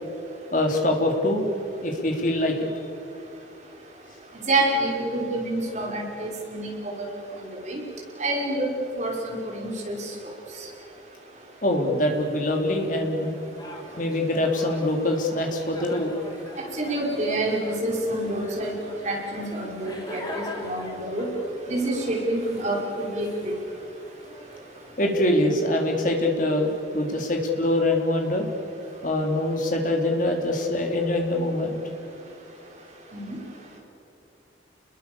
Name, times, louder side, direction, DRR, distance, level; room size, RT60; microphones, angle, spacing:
voice 1, 0.5-1.4 1.8-2.5 11.6-13.3 14.0-16.2 25.0-28.5 29.0-31.8, left 1 dB, 45° left, 2 dB, 3.7 m, -24 dB
voice 2, 4.5-7.1 7.7-7.8 8.2-8.7 9.0-10.0 16.6-18.7 19.0-21.3 21.7-23.5 33.1-33.4, right 1 dB, 40° right, -1 dB, 5.6 m, -27 dB
sound 1, 12.0-25.4, left 1 dB, 20° left, 3.3 m, -42 dB
29.5 x 21.5 x 7.1 m, 2.8 s
head